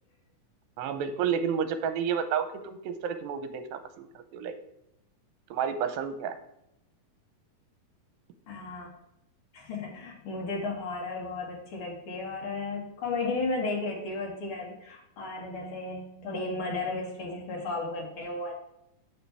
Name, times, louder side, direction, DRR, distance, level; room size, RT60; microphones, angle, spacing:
voice 1, 0.8-4.1 4.3-4.6 5.5-6.4, right 7 dB, 80° right, 9 dB, 2.5 m, -30 dB
voice 2, 8.5-8.9 9.5-18.5, left 3 dB, 45° left, -1 dB, 2.1 m, -34 dB
9.0 x 6.5 x 3.4 m, 0.84 s
omnidirectional pair, 4.2 m